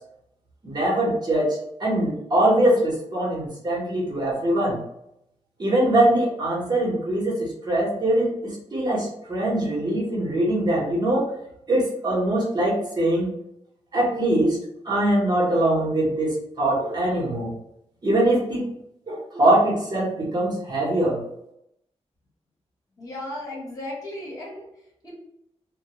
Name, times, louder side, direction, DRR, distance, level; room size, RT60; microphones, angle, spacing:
voice 1, 0.6-4.8 5.6-11.3 11.7-13.3 13.9-14.6 14.8-17.5 18.0-18.7 19.1-21.2, right 1 dB, 40° right, -4 dB, 0.9 m, -22 dB
voice 2, 23.0-24.7 25.0-25.1, left 1 dB, 30° left, -5 dB, 1.1 m, -35 dB
2.1 x 2.1 x 2.9 m, 0.78 s
wide cardioid pair, 100°, 11 cm